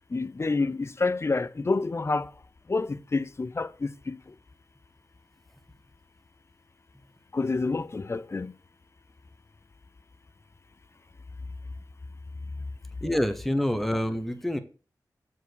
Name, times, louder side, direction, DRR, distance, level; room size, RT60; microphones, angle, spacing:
voice 1, 0.1-2.3 2.7-4.2 7.3-8.5, left 3 dB, 35° left, 0.5 m, -28 dB
voice 2, 13.0-14.6, left 1 dB, 5° left, 1.1 m, -27 dB
7.4 x 4.7 x 6.3 m
wide cardioid pair, 80°, 7 cm